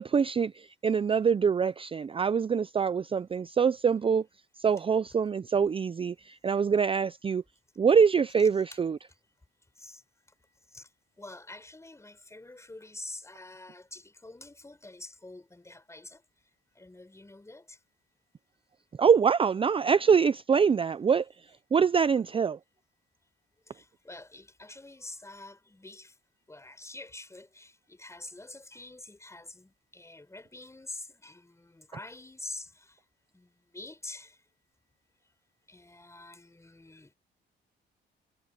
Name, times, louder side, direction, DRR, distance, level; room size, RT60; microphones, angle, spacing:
voice 1, 0.0-4.2 4.6-7.4 7.8-9.0 19.0-21.3 21.7-22.6, right 6 dB, 25° right, 0.5 m, -24 dB
voice 2, 11.2-16.2 16.7-17.8 23.7-26.2 26.5-33.0 33.3-34.4 35.7-37.1, left 2 dB, 15° left, 5.0 m, -46 dB
cardioid pair, 90°, 20 cm